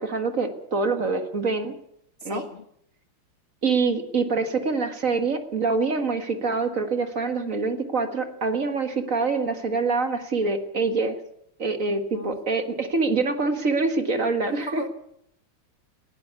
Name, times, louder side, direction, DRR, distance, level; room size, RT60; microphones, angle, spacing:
voice 1, 0.0-1.7 2.2-2.4 3.6-11.2 11.6-14.8, right 4 dB, 40° right, 7 dB, 1.9 m, -25 dB
voice 2, 2.2-2.6 12.1-12.4 14.5-14.9, left 2 dB, 40° left, 7 dB, 1.1 m, -35 dB
19.0 x 16.5 x 8.3 m, 0.73 s
omnidirectional pair, 2.3 m